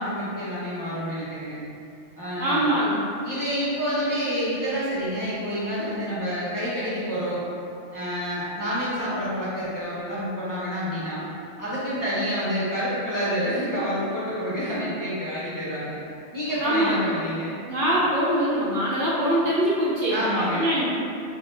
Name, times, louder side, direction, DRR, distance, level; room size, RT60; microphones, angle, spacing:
voice 1, 0.0-1.6 2.2-2.6 3.2-7.4 7.9-11.3 11.6-16.0 16.3-17.6 19.8-20.7, equal, 20° left, -11 dB, 0.7 m, -28 dB
voice 2, 2.4-3.0 16.6-17.1 17.7-20.2 20.5-20.9, equal, 55° right, -7 dB, 0.8 m, -23 dB
5.7 x 2.3 x 2.6 m, 2.5 s
omnidirectional pair, 1.2 m